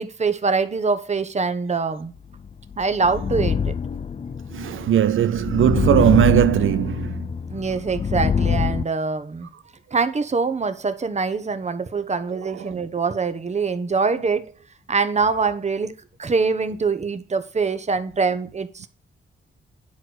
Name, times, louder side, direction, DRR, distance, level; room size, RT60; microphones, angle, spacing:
voice 1, 0.0-2.1 2.8-3.7 7.5-9.5 9.9-14.5 14.9-15.9 16.2-18.9, right 4 dB, 35° right, 1.1 m, -24 dB
sound 1, 2.4-8.8, left 6 dB, 30° left, 0.5 m, -25 dB
voice 2, 4.5-7.3 12.3-12.8, right 11 dB, 70° right, 0.4 m, -19 dB
10.0 x 4.7 x 6.2 m
wide cardioid pair, 120°, 21 cm